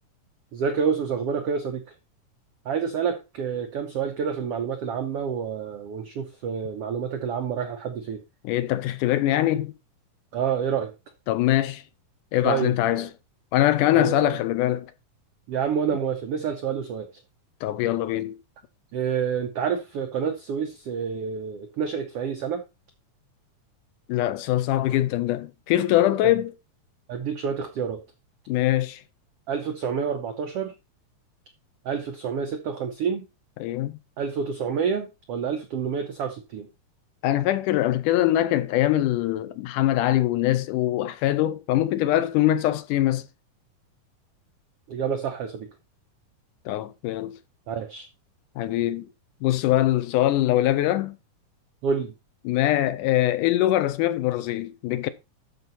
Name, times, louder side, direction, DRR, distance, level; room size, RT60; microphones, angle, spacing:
voice 1, 0.5-1.8 2.6-8.2 10.3-10.9 12.4-13.1 13.9-14.4 15.5-17.1 18.9-22.6 27.1-28.0 29.5-30.7 31.8-33.3 34.2-36.7 44.9-45.7 47.7-48.1 51.8-52.1, right 7 dB, 85° right, 1.3 m, -28 dB
voice 2, 8.4-9.7 11.3-11.8 12.3-13.1 13.5-14.9 17.6-18.4 24.1-26.5 28.5-29.0 33.6-34.0 37.2-43.3 46.7-47.4 48.6-49.1 49.4-51.2 52.5-55.1, left 14 dB, 80° left, 2.0 m, -23 dB
12.5 x 5.1 x 4.0 m
omnidirectional pair, 3.9 m